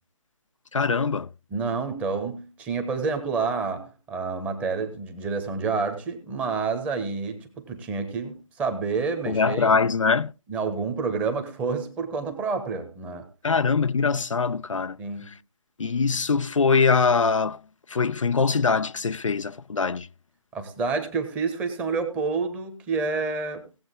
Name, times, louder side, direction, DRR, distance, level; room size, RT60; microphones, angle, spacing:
voice 1, 0.7-1.3 9.3-10.3 13.4-15.0 15.8-17.6 17.9-20.1, left 5 dB, 70° left, 0.5 m, -23 dB
voice 2, 1.5-9.9 10.5-13.3 15.0-15.4 20.5-23.6, right 4 dB, 10° right, 1.1 m, -29 dB
17.5 x 7.7 x 3.7 m
figure-of-eight pair, 155°, 17 cm